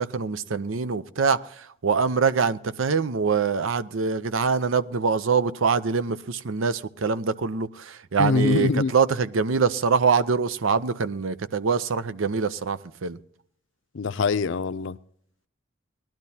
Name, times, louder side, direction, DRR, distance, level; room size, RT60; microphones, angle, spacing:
voice 1, 0.0-1.4 1.8-13.2, right 5 dB, 85° right, 0.6 m, -24 dB
voice 2, 8.2-8.9 13.9-15.0, left 4 dB, 70° left, 0.5 m, -23 dB
19.5 x 12.0 x 2.8 m
head